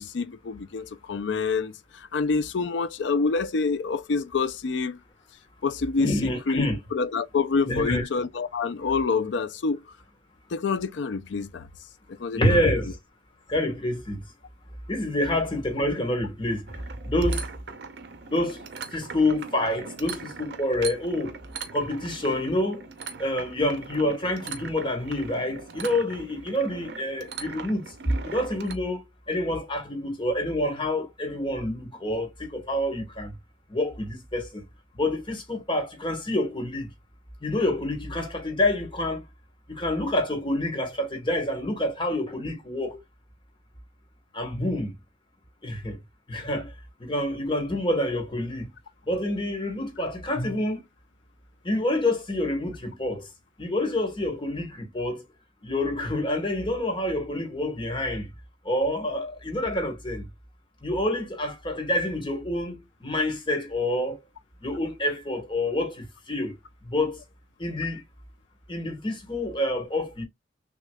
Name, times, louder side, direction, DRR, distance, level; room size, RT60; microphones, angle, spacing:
voice 1, 0.0-5.0 5.6-9.8 10.5-11.7 12.1-12.7, left 4 dB, 70° left, 0.5 m, -27 dB
voice 2, 6.0-6.8 7.6-8.1 12.3-13.0 13.5-14.2 14.9-16.8 17.0-17.4 18.3-18.6 18.9-21.4 21.7-22.8 23.2-27.9 28.2-33.3 33.7-34.6 34.9-36.9 37.4-39.2 39.7-43.0 44.3-44.9 45.6-46.0 46.3-46.7 47.0-48.7 49.1-50.8 51.6-53.3 53.6-55.2 55.6-58.3 58.6-60.2 60.8-64.2 64.6-66.6 66.8-67.2 67.6-68.0 68.7-70.2, left 1 dB, 25° left, 1.3 m, -27 dB
sound 1, 16.7-28.7, right 5 dB, 60° right, 0.7 m, -40 dB
6.3 x 2.3 x 2.3 m
head